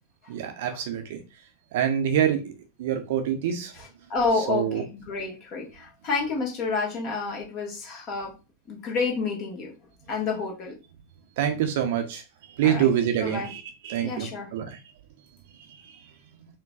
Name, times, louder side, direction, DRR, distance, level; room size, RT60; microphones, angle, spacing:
voice 1, 0.3-1.2 1.7-2.5 2.8-3.7 4.3-4.8 11.4-12.2 12.6-14.8, right 9 dB, 55° right, 5 dB, 0.8 m, -26 dB
voice 2, 3.7-8.3 8.7-9.7 10.1-10.8 12.6-12.9 13.2-13.5 14.0-14.5, left 4 dB, 40° left, -1 dB, 1.6 m, -29 dB
4.7 x 3.0 x 2.4 m, 0.28 s
figure-of-eight pair, 90°, 0 cm